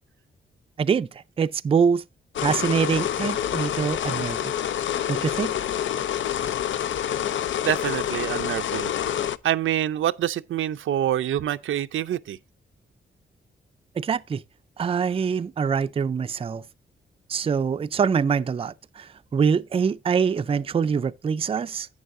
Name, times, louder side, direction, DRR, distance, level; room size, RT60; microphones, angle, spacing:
voice 1, 0.8-1.1 1.4-2.0 2.4-4.5 5.1-5.5 14.0-14.4 14.8-16.6 17.3-19.1 19.3-21.9, right 6 dB, 30° right, 0.4 m, -24 dB
sound 1, 2.3-9.4, left 10 dB, 75° left, 0.5 m, -27 dB
voice 2, 7.6-8.9 9.4-12.4, right 11 dB, 90° right, 0.5 m, -26 dB
11.0 x 8.5 x 2.5 m
wide cardioid pair, 140°, 20 cm